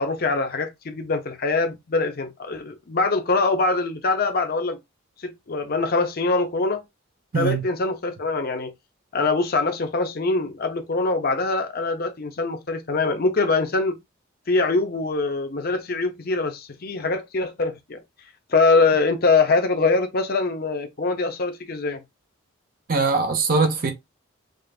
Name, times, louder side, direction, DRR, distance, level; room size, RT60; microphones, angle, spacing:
voice 1, 0.0-4.8 5.2-6.8 7.3-8.7 9.1-14.0 14.5-18.0 18.5-22.0, left 3 dB, 45° left, 0.6 m, -23 dB
voice 2, 22.9-23.9, right 4 dB, 45° right, 0.6 m, -21 dB
5.0 x 2.4 x 2.4 m
head